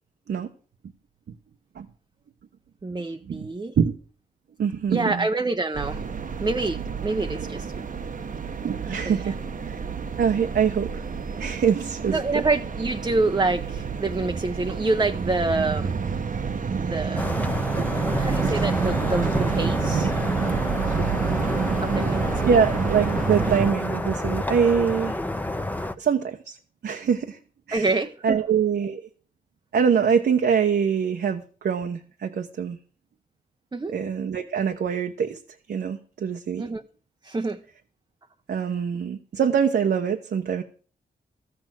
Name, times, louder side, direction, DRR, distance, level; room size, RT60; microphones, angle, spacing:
voice 1, 2.8-3.7 4.9-6.0 6.4-7.8 9.1-9.3 12.1-15.9 16.8-17.3 18.1-20.1 21.8-22.6 27.7-28.4 33.7-33.9 36.6-36.8 37.2-37.6, right 3 dB, 25° right, 0.7 m, -27 dB
voice 2, 4.6-5.3 6.7-6.8 7.4-7.5 8.6-9.3 9.7-9.8 10.2-11.1 11.4-12.4 22.4-25.2 26.0-26.6 26.8-27.4 27.7-27.9 28.2-29.0 29.7-32.8 33.9-35.4 35.7-36.7 38.5-40.6, right 7 dB, 75° right, 1.0 m, -24 dB
sound 1, 5.7-23.7, right 6 dB, 50° right, 0.9 m, -28 dB
sound 2, 17.2-26.0, left 1 dB, 10° left, 0.8 m, -29 dB
13.5 x 6.9 x 7.5 m
cardioid pair, 80°, 17 cm